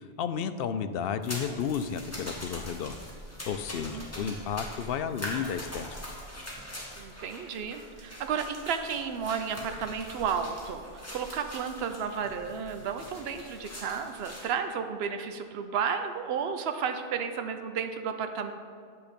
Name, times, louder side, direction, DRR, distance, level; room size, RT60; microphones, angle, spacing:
voice 1, 0.2-3.0 3.5-5.9, left 7 dB, 65° left, 11 dB, 0.7 m, -32 dB
sound 1, 1.2-14.5, equal, 15° left, 1.9 m, -43 dB
voice 2, 3.9-4.3 7.0-10.8 11.1-18.5, right 6 dB, 70° right, 7 dB, 0.9 m, -32 dB
9.6 x 7.7 x 5.2 m, 2.2 s
omnidirectional pair, 1.1 m